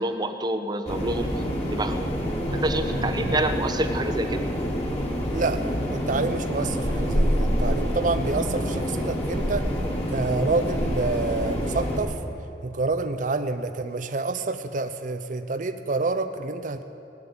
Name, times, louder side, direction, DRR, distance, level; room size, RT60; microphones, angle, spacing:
voice 1, 0.0-1.3 1.7-1.9 2.5-4.4, right 1 dB, 25° right, 7 dB, 0.9 m, -27 dB
sound 1, 0.9-12.0, equal, 40° left, 2.4 m, -27 dB
voice 2, 2.9-3.4 5.3-5.6 5.9-9.7 10.1-12.2 12.6-16.8, right 3 dB, 45° right, 9 dB, 0.6 m, -28 dB
17.0 x 8.8 x 9.7 m, 2.8 s
head